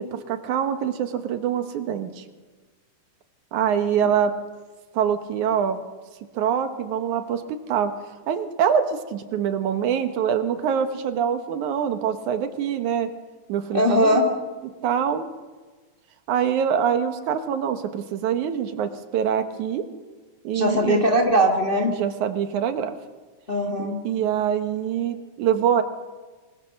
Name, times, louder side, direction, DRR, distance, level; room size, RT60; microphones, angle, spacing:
voice 1, 0.0-2.2 3.5-4.3 4.9-5.8 6.3-7.9 8.3-13.1 13.5-14.3 14.8-15.3 16.3-19.8 20.4-21.0 21.9-23.0 23.8-25.8, right 8 dB, 70° right, 9 dB, 2.5 m, -24 dB
voice 2, 13.7-14.2 20.5-21.9 23.5-24.0, equal, 25° left, 2 dB, 1.3 m, -20 dB
24.5 x 20.0 x 6.5 m, 1.3 s
omnidirectional pair, 3.7 m